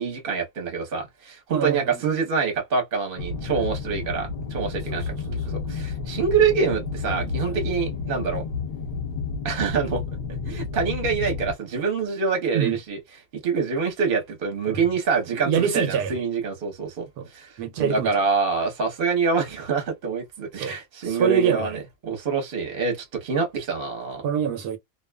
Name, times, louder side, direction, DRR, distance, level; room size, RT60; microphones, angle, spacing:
voice 1, 0.0-5.0 5.7-8.4 9.4-10.0 10.5-13.0 13.4-24.2, right 5 dB, 40° right, 0.9 m, -26 dB
voice 2, 1.5-2.0 4.9-5.0 5.3-5.6 7.1-7.6 12.5-12.8 14.7-14.8 15.3-16.1 17.2-17.3 17.6-18.1 20.6-20.8 21.0-21.8 24.2-24.8, right 7 dB, 80° right, 1.1 m, -25 dB
sound 1, 3.2-11.5, left 4 dB, 50° left, 0.8 m, -31 dB
2.6 x 2.3 x 2.2 m
omnidirectional pair, 1.7 m